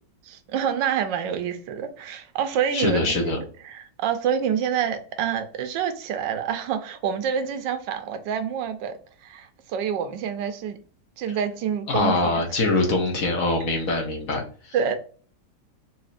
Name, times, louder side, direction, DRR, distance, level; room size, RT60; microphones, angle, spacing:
voice 1, 0.2-10.8 11.2-12.5 14.7-15.0, right 8 dB, 85° right, 1.3 m, -27 dB
voice 2, 2.7-3.4 11.9-15.0, left 2 dB, 55° left, 1.2 m, -24 dB
4.1 x 2.7 x 2.5 m
omnidirectional pair, 1.9 m